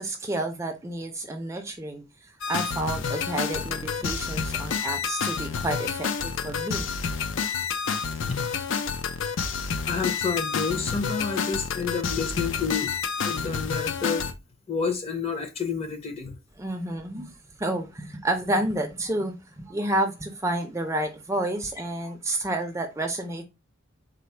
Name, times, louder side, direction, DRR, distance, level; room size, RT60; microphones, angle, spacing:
voice 1, 0.0-6.9 16.6-17.3 17.6-23.4, right 1 dB, 15° right, 0.4 m, -30 dB
sound 1, 2.4-14.3, left 6 dB, 70° left, 0.4 m, -29 dB
voice 2, 8.1-8.4 9.8-12.9 13.2-14.3 14.7-16.3, left 5 dB, 30° left, 0.7 m, -29 dB
4.0 x 2.0 x 4.2 m
head